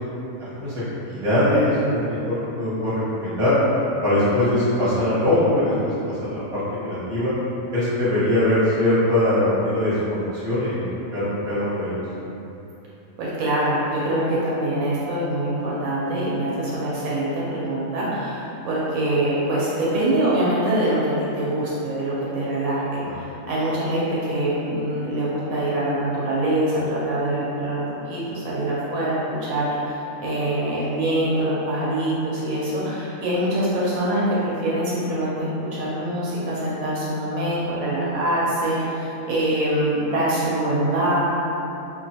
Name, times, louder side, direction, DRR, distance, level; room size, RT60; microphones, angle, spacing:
voice 1, 0.4-3.5 4.0-5.9 6.2-7.3 7.7-12.0 23.0-23.1, left 1 dB, 25° right, -13 dB, 1.2 m, -22 dB
voice 2, 13.2-29.7 30.2-41.2, right 1 dB, 80° right, -7 dB, 1.0 m, -24 dB
3.0 x 2.5 x 2.7 m, 2.9 s
omnidirectional pair, 1.5 m